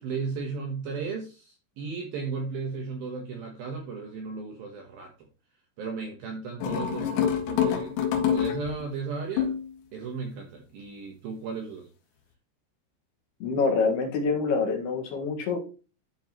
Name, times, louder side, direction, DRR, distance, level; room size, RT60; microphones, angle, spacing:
voice 1, 0.0-5.1 5.8-9.6 9.9-11.9, right 5 dB, 75° right, 2 dB, 2.2 m, -35 dB
sound 1, 6.6-8.9 9.4-9.7, left 8 dB, 85° left, 4.5 m, -26 dB
voice 2, 13.4-15.7, left 4 dB, 60° left, 3 dB, 3.2 m, -26 dB
13.5 x 5.2 x 3.0 m, 0.34 s
omnidirectional pair, 5.8 m